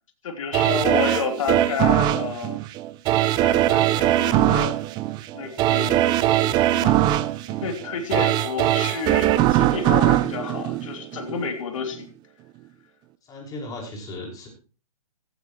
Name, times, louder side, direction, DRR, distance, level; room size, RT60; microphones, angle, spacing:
voice 1, 0.2-2.6 3.2-4.8 5.3-7.1 7.5-12.1, left 6 dB, 55° left, 5 dB, 3.2 m, -30 dB
sound 1, 0.5-11.5 11.9-12.0, right 14 dB, 20° right, 0.7 m, -21 dB
voice 2, 13.2-14.5, left 2 dB, 20° left, 0 dB, 5.8 m, -37 dB
16.0 x 15.0 x 3.1 m, 0.35 s
figure-of-eight pair, 130°, 19 cm